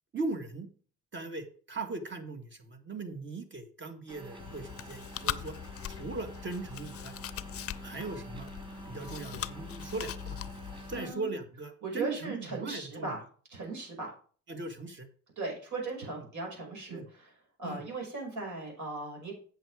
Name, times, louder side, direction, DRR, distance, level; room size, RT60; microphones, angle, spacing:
voice 1, 0.1-0.7 1.1-5.6 5.9-7.2 7.8-8.5 8.9-10.4 10.9-13.1 14.5-15.1 16.9-17.1 17.6-17.8, right 3 dB, 40° right, 6 dB, 1.8 m, -39 dB
sound 1, 4.1-11.1, right 1 dB, 15° right, 2.9 m, -47 dB
Chewing mastication, 4.4-11.0, left 11 dB, 50° left, 0.6 m, -41 dB
voice 2, 10.9-11.3 11.8-13.2 13.5-14.1 15.4-17.3 17.6-19.3, right 3 dB, 70° right, 0 dB, 5.6 m, -38 dB
8.4 x 6.7 x 4.8 m, 0.42 s
cardioid pair, 90°, 30 cm